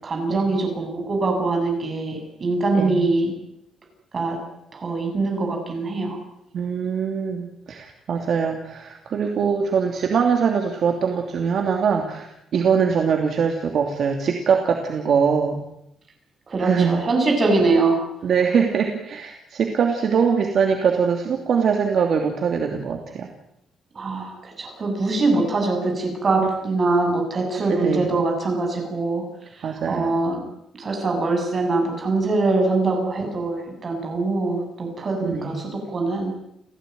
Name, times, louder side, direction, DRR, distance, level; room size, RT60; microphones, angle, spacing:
voice 1, 0.0-3.3 4.1-4.4 4.7-6.2 16.5-18.0 23.9-29.2 29.5-30.4 30.8-36.4, right 3 dB, 30° right, 2 dB, 7.6 m, -23 dB
voice 2, 6.5-15.6 16.6-17.0 18.2-23.3 26.4-26.5 27.7-28.1 29.6-30.2 32.6-33.0 35.2-35.6, right 6 dB, 45° right, 3 dB, 2.7 m, -22 dB
30.0 x 16.0 x 9.5 m, 0.80 s
cardioid pair, 175°, 0 cm